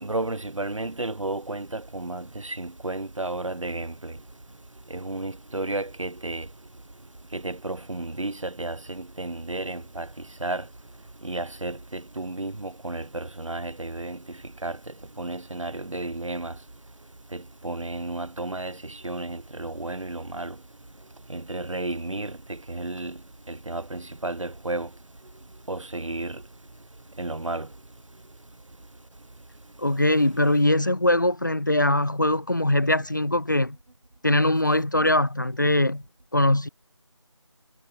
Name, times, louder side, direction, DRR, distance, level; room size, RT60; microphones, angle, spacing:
voice 1, 0.0-4.2 4.9-6.5 7.3-10.1 10.4-10.7 11.2-16.6 17.3-20.6 21.3-23.2 23.5-24.9 25.7-26.4 27.2-27.7, right 2 dB, 80° right, 1.3 m, -33 dB
voice 2, 29.8-33.8 34.2-36.0 36.3-36.7, left 1 dB, 40° left, 0.4 m, -22 dB
figure-of-eight pair, 170°, 16 cm